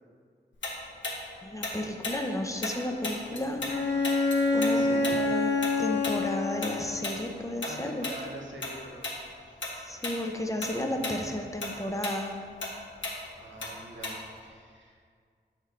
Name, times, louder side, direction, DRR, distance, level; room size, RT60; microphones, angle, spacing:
Tick-tock, 0.6-3.8 4.0-8.7 9.0-9.2 9.6-10.2 10.5-14.4, left 2 dB, 90° left, 1.3 m, -36 dB
voice 1, 1.4-3.6 4.5-5.5 5.8-8.1 9.8-12.4, left 1 dB, 15° left, 3 dB, 0.6 m, -33 dB
Bowed string instrument, 3.7-7.2, left 3 dB, 70° left, 0.7 m, -27 dB
voice 2, 4.5-5.3 7.6-9.1 9.4-9.6 13.4-15.0, right 1 dB, 90° right, -1 dB, 1.2 m, -44 dB
7.9 x 5.7 x 3.4 m, 2.1 s
wide cardioid pair, 75°, 19 cm